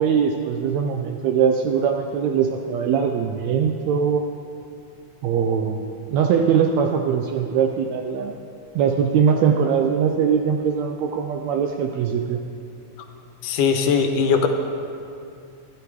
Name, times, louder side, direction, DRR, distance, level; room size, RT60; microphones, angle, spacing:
voice 1, 0.0-4.2 5.2-8.3 8.7-12.4, right 7 dB, 80° right, 4 dB, 1.6 m, -21 dB
voice 2, 13.4-14.5, left 6 dB, 90° left, 5 dB, 2.4 m, -19 dB
12.0 x 11.0 x 4.8 m, 2.6 s
omnidirectional pair, 3.6 m